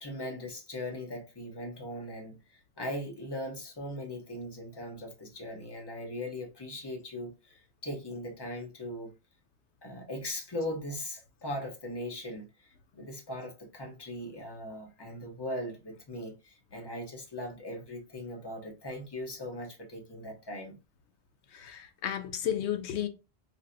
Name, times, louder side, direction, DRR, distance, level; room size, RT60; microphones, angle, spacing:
voice 1, 0.0-9.1 9.8-20.8, left 1 dB, 25° left, 0.8 m, -39 dB
voice 2, 21.5-23.1, left 10 dB, 80° left, 0.9 m, -33 dB
4.2 x 2.1 x 2.5 m
omnidirectional pair, 1.1 m